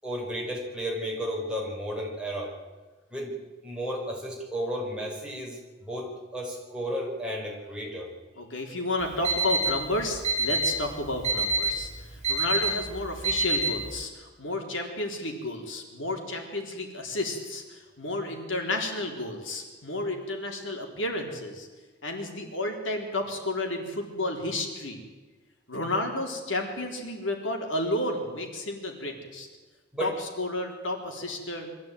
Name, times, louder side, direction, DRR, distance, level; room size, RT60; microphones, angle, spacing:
voice 1, 0.0-2.5 3.1-3.4 3.6-5.6 5.8-8.1 29.9-30.1, equal, 5° right, -3 dB, 5.4 m, -33 dB
voice 2, 8.4-21.7 22.0-25.0 25.7-29.5 30.0-31.7, left 1 dB, 80° left, 3 dB, 4.0 m, -32 dB
Alarm, 9.0-14.0, right 2 dB, 40° right, 3.1 m, -28 dB
23.5 x 15.0 x 9.3 m, 1.3 s
head